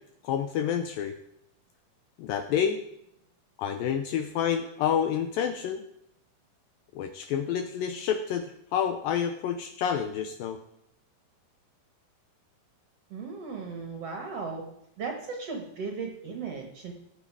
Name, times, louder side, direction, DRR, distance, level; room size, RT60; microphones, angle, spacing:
voice 1, 0.2-1.1 2.2-2.8 3.6-5.8 7.0-10.6, left 8 dB, 80° left, 7 dB, 2.1 m, -29 dB
voice 2, 13.1-14.6 15.0-16.9, right 4 dB, 60° right, 3 dB, 1.7 m, -36 dB
17.0 x 7.6 x 4.7 m, 0.79 s
omnidirectional pair, 4.5 m